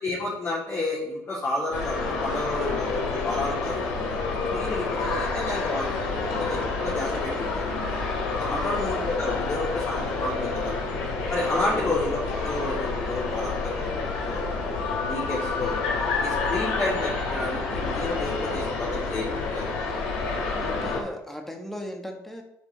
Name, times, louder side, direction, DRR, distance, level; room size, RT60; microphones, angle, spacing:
voice 1, 0.0-4.0 4.5-7.8 8.4-10.8 11.3-14.6 15.1-15.8 16.2-19.7, left 2 dB, 40° left, -8 dB, 2.4 m, -30 dB
sound 1, 1.7-21.0, left 3 dB, 90° left, 2.2 m, -29 dB
voice 2, 8.4-8.9 11.7-11.9 20.6-22.4, left 1 dB, 5° left, 2 dB, 1.6 m, -37 dB
7.8 x 4.4 x 4.1 m, 0.79 s
supercardioid pair, 75°, 7 cm